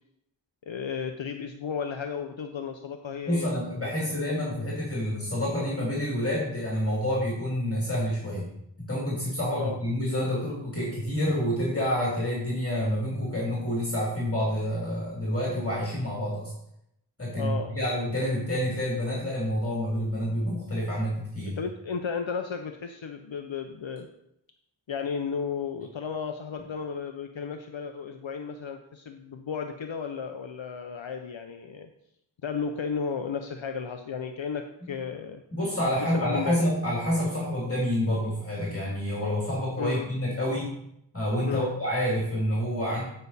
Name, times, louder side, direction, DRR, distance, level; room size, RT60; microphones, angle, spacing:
voice 1, 0.6-3.9 9.6-9.8 17.3-17.8 21.4-24.1 24.9-31.9 32.4-35.4 35.9-36.6 39.8-40.1 41.5-41.8, left 6 dB, 70° left, 5 dB, 0.7 m, -34 dB
voice 2, 3.2-8.5 8.8-16.5 17.2-21.6 34.8-34.9 35.5-40.7 41.1-43.0, equal, 30° left, -5 dB, 2.7 m, -28 dB
9.1 x 5.3 x 4.1 m, 0.77 s
wide cardioid pair, 50°, 47 cm